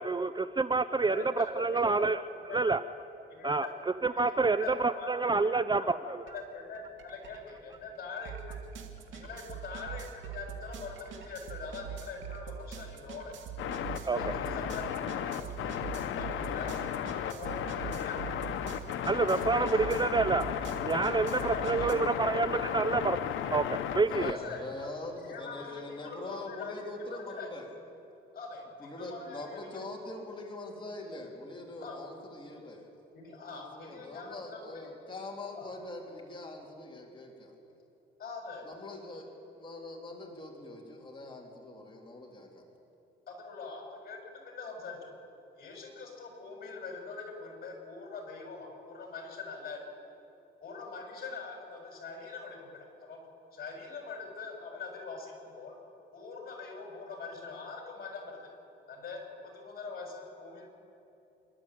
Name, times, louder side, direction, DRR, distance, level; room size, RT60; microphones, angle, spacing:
voice 1, 0.0-2.2 2.5-2.8 3.4-3.7 4.0-6.2 14.1-14.2 19.1-20.4 20.8-23.2 23.5-24.4, right 3 dB, 20° right, 13 dB, 0.5 m, -28 dB
voice 2, 1.0-2.1 2.4-2.7 3.3-3.7 4.1-5.3 5.7-5.9 6.2-8.6 9.1-13.3 14.0-18.4 19.2-20.0 21.4-22.9 24.2-24.6 25.1-26.9 27.3-27.5 28.3-29.7 31.8-32.0 33.1-34.9 35.5-35.7 38.2-38.6 43.3-45.1 45.6-49.8 50.6-53.2 53.5-55.8 56.1-58.4 58.9-60.7, left 4 dB, 50° left, 1 dB, 6.8 m, -43 dB
sound 1, 6.3-6.4 6.7-21.9, right 8 dB, 75° right, 2.2 m, -43 dB
sound 2, 13.6-24.3, left 9 dB, 80° left, 1.1 m, -35 dB
voice 3, 24.1-27.7 28.8-32.9 33.5-37.6 38.6-42.6, left 2 dB, 25° left, -1 dB, 3.7 m, -43 dB
27.5 x 12.5 x 8.6 m, 3.0 s
cardioid pair, 90°, 20 cm